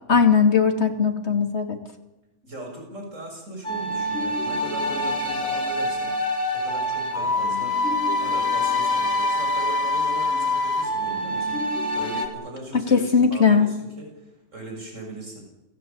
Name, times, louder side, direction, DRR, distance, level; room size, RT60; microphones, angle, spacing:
voice 1, 0.1-1.8 12.7-13.7, left 6 dB, 60° left, 5 dB, 2.7 m, -19 dB
voice 2, 2.4-7.9 8.2-15.4, right 2 dB, 85° right, 1 dB, 7.0 m, -39 dB
sound 1, 3.6-12.3, left 2 dB, 80° left, 4.3 m, -25 dB
29.0 x 18.0 x 8.8 m, 0.98 s
omnidirectional pair, 1.3 m